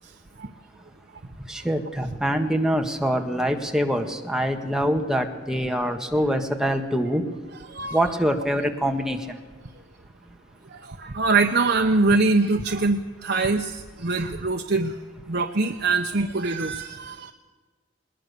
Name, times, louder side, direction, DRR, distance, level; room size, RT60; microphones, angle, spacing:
voice 1, 1.5-7.2 7.9-9.4, equal, 5° right, 3 dB, 1.7 m, -24 dB
voice 2, 7.6-8.1 10.7-15.0 15.3-17.3, right 3 dB, 60° right, 4 dB, 0.9 m, -23 dB
20.5 x 20.0 x 6.9 m, 1.4 s
head